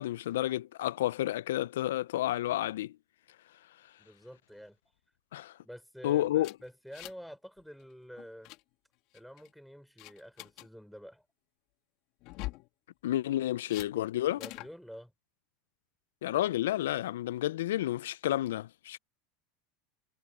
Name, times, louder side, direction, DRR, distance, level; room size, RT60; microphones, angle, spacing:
voice 1, 0.0-2.9 5.3-5.6 6.0-6.5 13.0-14.4 16.2-19.0, left 13 dB, 85° left, 0.3 m, -30 dB
voice 2, 4.0-4.8 5.6-8.5 9.1-11.3 14.4-15.1, equal, ahead, 3.7 m, -48 dB
sound 1, 6.4-7.3 7.6-7.8 8.2-8.6 9.1-9.5 10.0-10.7 12.2-12.7 13.7-13.9 14.4-14.7, left 20 dB, 60° left, 1.6 m, -43 dB
supercardioid pair, 110°, 0 cm